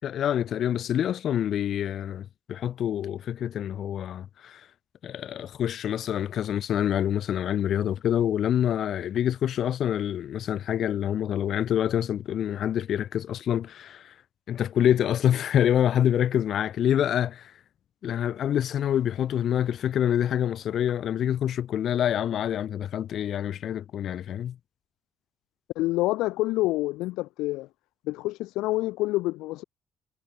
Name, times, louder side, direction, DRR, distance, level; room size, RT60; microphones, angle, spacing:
voice 1, 0.0-4.6 5.0-14.1 14.5-17.5 18.0-24.6, left 10 dB, 70° left, 4.3 m, -26 dB
voice 2, 25.8-27.7 28.1-29.6, left 19 dB, 85° left, 5.6 m, -27 dB
supercardioid pair, 60°, 0 cm